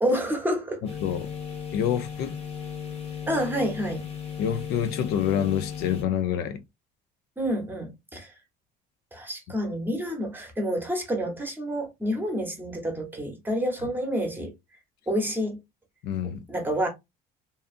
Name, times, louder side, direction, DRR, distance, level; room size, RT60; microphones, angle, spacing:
voice 1, 0.0-0.8 3.3-4.1 7.4-8.3 9.1-14.5 15.1-15.6 16.5-16.9, equal, 10° right, 0.9 m, -28 dB
sound 1, 0.8-6.0, left 7 dB, 35° left, 0.9 m, -36 dB
voice 2, 1.0-1.3 1.7-2.4 4.4-6.6 16.0-16.4, left 9 dB, 70° left, 0.4 m, -27 dB
2.7 x 2.3 x 2.4 m
cardioid pair, 125°, 18 cm